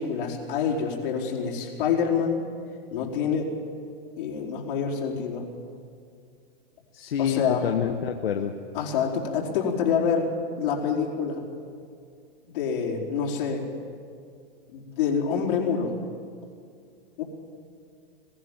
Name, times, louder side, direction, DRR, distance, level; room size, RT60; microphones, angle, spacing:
voice 1, 0.0-2.4 2.9-3.5 4.2-5.5 7.2-7.7 8.7-10.3 10.6-11.4 12.5-13.6 14.7-15.9 17.2-17.3, left 6 dB, 60° left, -1 dB, 4.7 m, -26 dB
voice 2, 6.9-8.5, left 8 dB, 85° left, 5 dB, 1.3 m, -27 dB
22.0 x 15.5 x 9.1 m, 2.3 s
hypercardioid pair, 125°, 29 cm